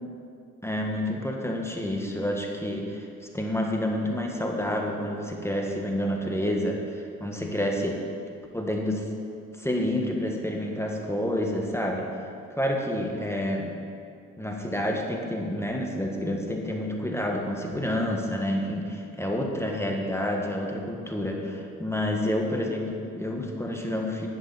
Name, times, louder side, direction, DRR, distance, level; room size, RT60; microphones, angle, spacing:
voice 1, 0.6-3.1 3.3-8.0 8.5-9.1 9.6-12.1 12.5-13.7 14.4-24.3, left 1 dB, 10° left, 1 dB, 1.7 m, -29 dB
10.5 x 10.5 x 4.3 m, 2.4 s
supercardioid pair, 45°, 33 cm